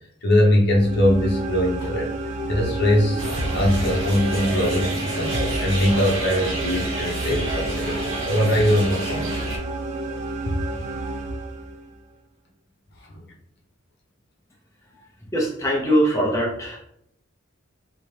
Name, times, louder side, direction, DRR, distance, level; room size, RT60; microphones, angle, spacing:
voice 1, 0.2-2.1 2.5-3.3 3.5-8.0 8.2-9.4, left 1 dB, 55° left, -1 dB, 0.8 m, -21 dB
sound 1, 0.6-12.0, right 2 dB, 35° right, 0.4 m, -31 dB
sound 2, 3.2-9.6, right 1 dB, 75° right, 1.2 m, -29 dB
voice 2, 15.3-16.8, equal, 15° left, -2 dB, 0.6 m, -22 dB
3.4 x 2.7 x 3.2 m, 0.72 s
head